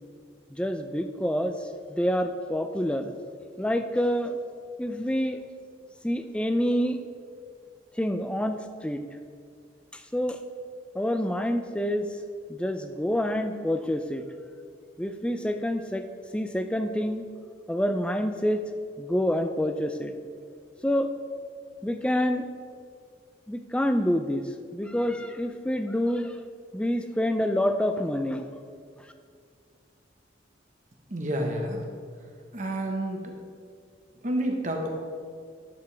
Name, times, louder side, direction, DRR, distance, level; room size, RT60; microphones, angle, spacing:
voice 1, 0.5-3.1 3.6-4.4 4.8-5.4 6.0-7.0 8.0-9.0 9.9-10.4 10.9-12.1 12.5-14.2 15.0-16.1 16.3-17.3 17.7-18.6 19.0-20.1 20.8-21.1 21.8-22.4 23.5-26.4 26.7-28.5, equal, 5° left, 8 dB, 0.3 m, -27 dB
voice 2, 31.1-31.8 32.5-33.3 34.2-34.9, right 1 dB, 40° right, 1 dB, 1.1 m, -29 dB
11.0 x 7.0 x 3.4 m, 2.2 s
head